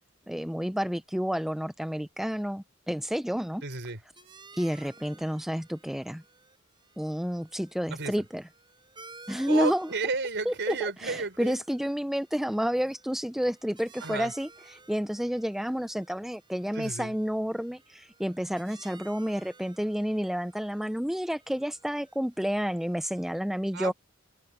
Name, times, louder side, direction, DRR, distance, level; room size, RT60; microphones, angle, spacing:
voice 1, 0.3-3.6 4.6-6.2 7.0-8.4 9.3-9.9 10.5-23.9, equal, ahead, 0.4 m, -30 dB
voice 2, 3.6-4.0 7.9-8.1 9.5-11.6 14.0-14.3 16.7-17.1 23.7-23.9, right 3 dB, 60° right, 5.2 m, -32 dB
sound 1, 4.2-23.3, right 4 dB, 20° right, 7.1 m, -56 dB
head